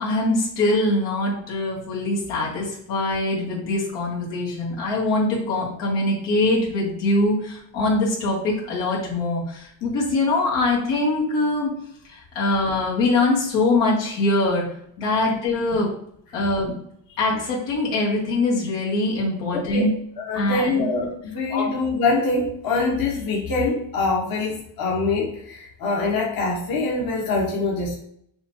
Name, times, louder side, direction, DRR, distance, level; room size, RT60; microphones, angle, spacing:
voice 1, 0.0-11.7 12.1-14.6 15.0-15.9 16.3-16.7 17.2-19.9 20.3-20.7 21.5-21.6, left 2 dB, 90° left, -5 dB, 1.9 m, -23 dB
voice 2, 19.5-19.9 20.2-28.0, left 3 dB, 50° left, -2 dB, 1.2 m, -24 dB
6.8 x 2.5 x 2.8 m, 0.69 s
cardioid pair, 90°, 44 cm